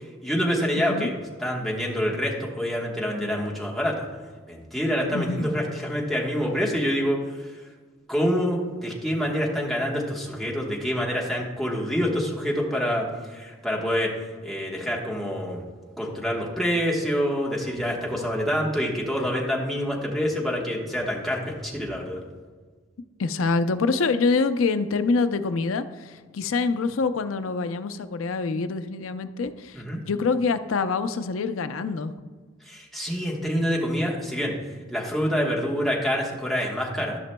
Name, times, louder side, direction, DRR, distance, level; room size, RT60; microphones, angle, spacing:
voice 1, 0.0-4.1 4.5-7.6 8.1-15.6 16.0-22.2 29.7-30.0 32.6-34.5 34.9-37.2, equal, ahead, -3 dB, 1.2 m, -27 dB
voice 2, 5.1-5.5 23.2-32.1, left 4 dB, 85° left, 10 dB, 0.5 m, -25 dB
14.0 x 6.0 x 2.2 m, 1.4 s
head